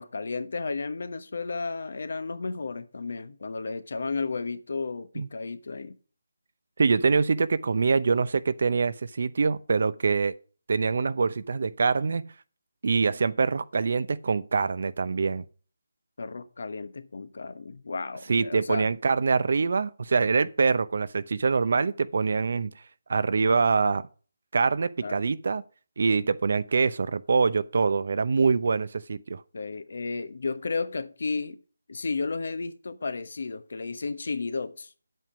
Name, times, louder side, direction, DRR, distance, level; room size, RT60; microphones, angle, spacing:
voice 1, 0.0-6.0 16.2-18.8 25.0-25.2 29.5-31.6 31.9-34.9, left 4 dB, 60° left, 1.1 m, -33 dB
voice 2, 6.8-10.3 10.7-12.3 12.8-15.5 18.3-22.7 23.1-24.1 24.5-25.6 26.0-29.4, right 4 dB, 55° right, 0.7 m, -24 dB
9.2 x 7.9 x 5.0 m
figure-of-eight pair, 170°, 0 cm